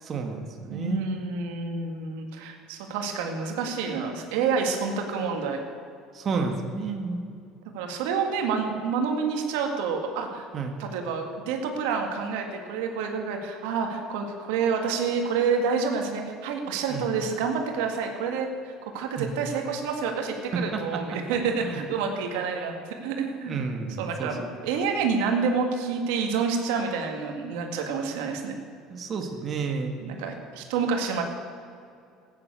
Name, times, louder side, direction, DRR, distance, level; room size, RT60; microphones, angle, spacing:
voice 1, 0.0-1.0 6.1-7.2 10.5-10.8 16.9-17.1 19.2-19.4 20.5-21.2 21.6-21.8 23.5-24.5 28.9-29.9, right 4 dB, 40° right, 4 dB, 1.8 m, -31 dB
voice 2, 0.7-5.6 7.7-10.5 10.8-23.6 24.0-28.6 30.0-31.2, right 5 dB, 85° right, 3 dB, 2.0 m, -28 dB
14.5 x 9.3 x 8.2 m, 2.4 s
supercardioid pair, 105°, 0 cm